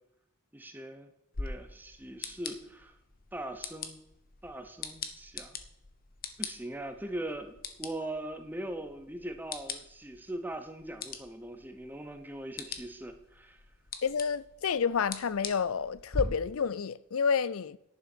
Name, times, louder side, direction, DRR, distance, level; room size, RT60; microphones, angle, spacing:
voice 1, 0.5-1.1 1.4-3.0 3.3-4.0 4.4-5.6 6.4-13.6, right 1 dB, 10° right, 0.9 m, -41 dB
sound 1, 1.3-16.2, left 4 dB, 40° left, 1.0 m, -43 dB
voice 2, 14.0-17.8, left 6 dB, 80° left, 0.5 m, -29 dB
10.5 x 6.9 x 6.1 m
head